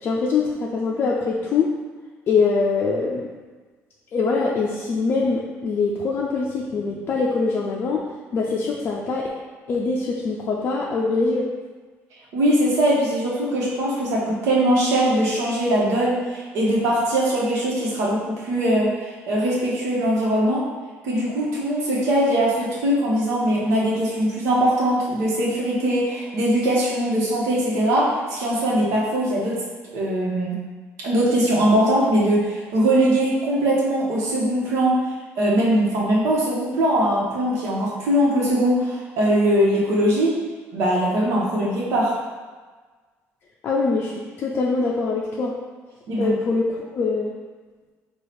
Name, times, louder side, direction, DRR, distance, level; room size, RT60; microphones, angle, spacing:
voice 1, 0.0-1.7 2.3-3.3 4.1-8.1 8.3-9.3 9.7-11.5 43.6-45.5 46.2-47.3, left 4 dB, 40° left, -3 dB, 0.4 m, -23 dB
voice 2, 12.3-20.6 21.0-29.5 29.9-30.6 31.0-35.0 35.4-40.3 40.7-42.1 46.1-46.3, right 1 dB, 80° right, -5 dB, 1.1 m, -21 dB
4.7 x 2.4 x 4.2 m, 1.4 s
cardioid pair, 160°, 5 cm